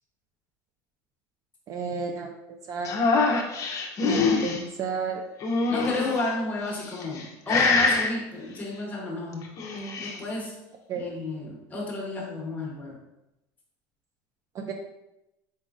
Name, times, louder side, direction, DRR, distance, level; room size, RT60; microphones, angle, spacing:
voice 1, 1.7-2.4 2.7-3.0 4.0-5.2 10.9-11.0 14.5-14.7, right 5 dB, 35° right, 3 dB, 0.4 m, -32 dB
sound 1, 2.8-4.6 5.4-6.2 6.9-7.2 7.5-8.1 9.4-10.2, left 4 dB, 35° left, 0.6 m, -24 dB
voice 2, 5.7-9.5 10.0-10.6 10.9-13.0, left 2 dB, 15° left, -2 dB, 1.1 m, -32 dB
4.0 x 3.6 x 2.5 m, 0.90 s
supercardioid pair, 130°, 9 cm